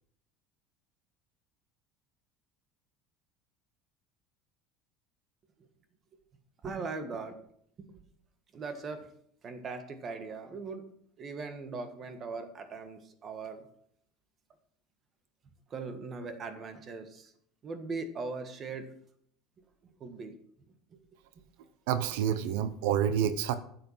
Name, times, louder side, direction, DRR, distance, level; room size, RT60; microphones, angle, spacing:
voice 1, 6.6-7.4 7.8-8.0 8.5-9.1 9.4-10.8 11.2-13.7 15.7-17.3 17.6-18.9 20.0-20.3, right 4 dB, 25° right, 8 dB, 1.6 m, -39 dB
voice 2, 21.9-23.5, right 9 dB, 85° right, 12 dB, 0.9 m, -28 dB
12.5 x 7.8 x 5.6 m, 0.65 s
cardioid pair, 165°, 0 cm